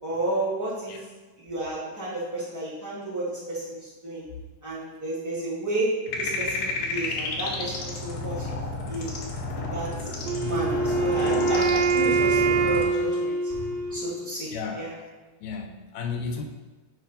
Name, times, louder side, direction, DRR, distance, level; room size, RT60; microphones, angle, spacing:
voice 1, 0.0-1.0 1.4-4.2 4.6-8.5 8.8-9.1 9.5-9.9 10.4-14.9, right 1 dB, 20° right, -9 dB, 0.5 m, -32 dB
sound 1, 6.1-12.8, left 2 dB, 65° left, 1.7 m, -31 dB
voice 2, 10.1-10.7 14.5-14.9 15.4-16.4, left 5 dB, 85° left, 4 dB, 2.1 m, -34 dB
Wind instrument woodwind instrument, 10.3-14.3, right 4 dB, 85° right, 1.4 m, -24 dB
7.9 x 2.7 x 5.5 m, 1.3 s
omnidirectional pair, 3.6 m